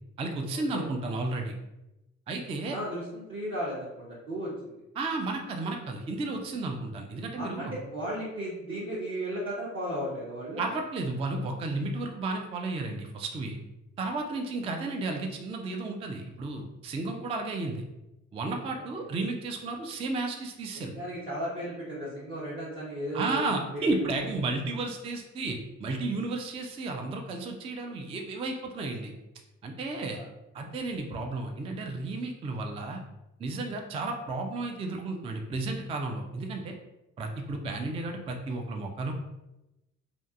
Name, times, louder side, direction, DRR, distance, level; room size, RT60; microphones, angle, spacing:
voice 1, 0.2-1.5 2.3-2.8 5.0-7.7 10.6-13.6 14.0-17.8 18.3-20.9 23.1-29.1 29.6-30.2 30.5-33.0 33.4-36.7 37.2-39.1, right 2 dB, 15° right, 3 dB, 0.3 m, -33 dB
voice 2, 2.7-4.8 7.4-10.6 18.7-19.0 20.7-23.4 23.7-23.9 24.3-24.4 30.1-30.3, right 1 dB, 35° right, -7 dB, 0.8 m, -35 dB
2.5 x 2.5 x 2.3 m, 0.95 s
figure-of-eight pair, 45°, 38 cm